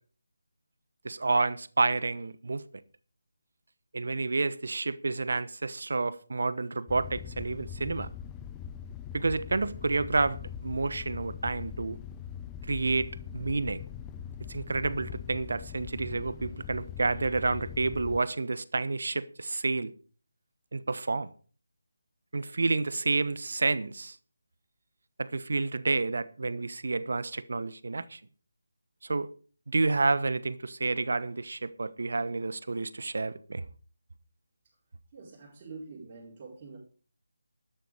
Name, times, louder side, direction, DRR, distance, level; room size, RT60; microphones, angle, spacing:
voice 1, 1.0-2.6 3.9-8.1 9.1-12.0 12.7-13.8 14.5-19.9 20.7-21.3 22.3-24.2 25.2-28.2 29.0-29.3 29.7-33.6, right 3 dB, 55° right, 1.1 m, -29 dB
sound 1, 6.9-18.2, left 8 dB, 15° left, 0.7 m, -42 dB
voice 2, 35.1-36.8, right 4 dB, 25° right, 4.7 m, -45 dB
12.5 x 11.5 x 4.9 m
figure-of-eight pair, 155°, 0 cm